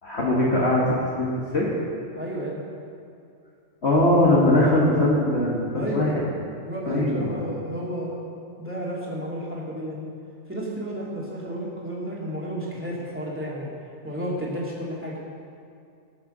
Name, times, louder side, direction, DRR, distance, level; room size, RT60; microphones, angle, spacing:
voice 1, 0.0-1.7 3.8-6.1 6.8-7.4, left 1 dB, 55° left, -5 dB, 2.0 m, -21 dB
voice 2, 2.1-2.6 5.7-6.2 6.6-8.2 8.6-10.1 10.5-13.7 14.0-15.2, equal, 10° right, -5 dB, 2.9 m, -32 dB
18.5 x 6.8 x 6.7 m, 2.4 s
omnidirectional pair, 1.4 m